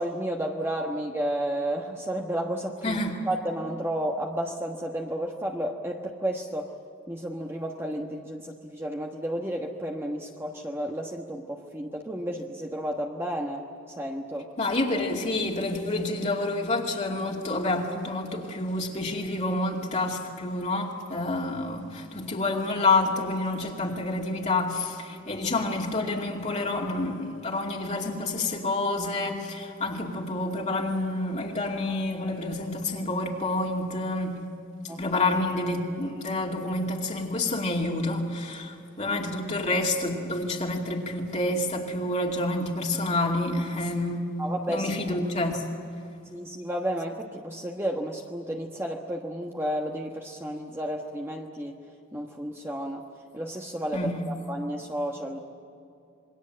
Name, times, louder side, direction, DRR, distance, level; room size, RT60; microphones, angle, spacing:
voice 1, 0.0-6.7 7.1-14.5 34.9-35.0 44.4-44.9 46.3-51.8 52.1-53.0 53.3-55.4, right 1 dB, 15° right, 1.3 m, -32 dB
voice 2, 2.8-3.2 14.6-34.4 35.0-44.2 44.7-45.7 53.9-54.1, left 2 dB, 35° left, 2.5 m, -28 dB
27.5 x 21.5 x 7.7 m
head